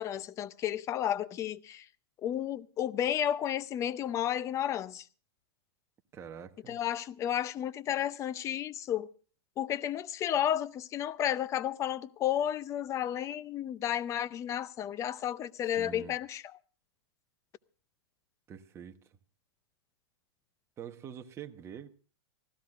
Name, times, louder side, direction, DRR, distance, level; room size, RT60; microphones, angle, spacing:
voice 1, 0.0-1.9 2.2-5.0 6.7-9.1 9.6-16.4, left 10 dB, 20° left, 0.6 m, -32 dB
voice 2, 6.1-6.8 15.6-16.2 18.5-19.2 20.8-21.9, right 8 dB, 20° right, 1.1 m, -45 dB
25.5 x 15.5 x 2.5 m
hypercardioid pair, 140°, 13 cm